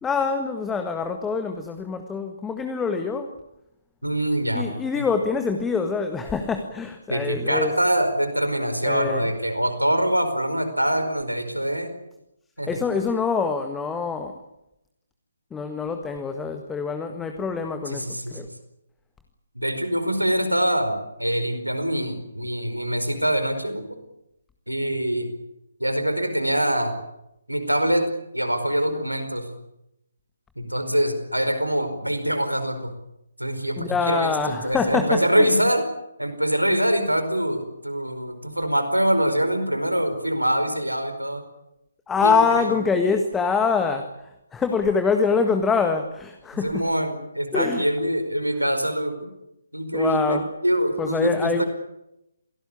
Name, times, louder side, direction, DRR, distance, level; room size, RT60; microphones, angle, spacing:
voice 1, 0.0-3.3 4.5-7.7 8.8-9.3 12.7-14.4 15.5-18.5 33.8-35.5 42.1-44.1 44.5-46.9 47.5-47.8 49.9-50.5 51.0-51.6, left 5 dB, 10° left, 6 dB, 1.6 m, -25 dB
voice 2, 4.0-4.7 4.9-5.0 7.1-11.9 12.6-12.8 17.9-18.4 19.5-24.0 24.7-25.3 25.8-26.9 27.5-28.1 28.3-29.5 30.6-32.9 33.4-35.8 36.2-41.4 42.2-42.4 46.5-49.3 49.7-50.4 50.6-51.7, right 1 dB, 85° right, 9 dB, 4.9 m, -24 dB
28.0 x 19.0 x 8.6 m, 0.86 s
figure-of-eight pair, 140°, 0 cm